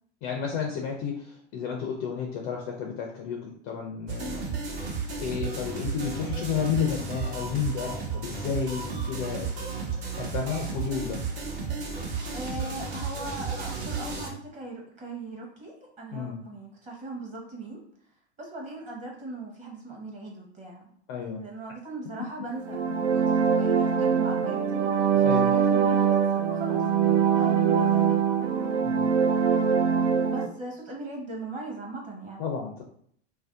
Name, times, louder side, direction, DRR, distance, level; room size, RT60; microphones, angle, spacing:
voice 1, 0.2-4.5 4.9-9.7 10.2-11.2 16.1-16.4 21.1-21.4 23.8-24.0 25.0-25.5 28.8-29.1 32.4-32.8, left 7 dB, 30° left, 1 dB, 0.3 m, -32 dB
sound 1, 4.1-14.3, right 5 dB, 55° right, 1.0 m, -33 dB
voice 2, 12.3-17.8 18.4-20.9 21.4-24.6 25.1-28.3 30.3-32.4, right 2 dB, 20° right, -1 dB, 0.9 m, -39 dB
sound 2, 22.5-30.5, right 7 dB, 90° right, 0.6 m, -23 dB
2.6 x 2.0 x 3.5 m, 0.63 s
hypercardioid pair, 130°, 35 cm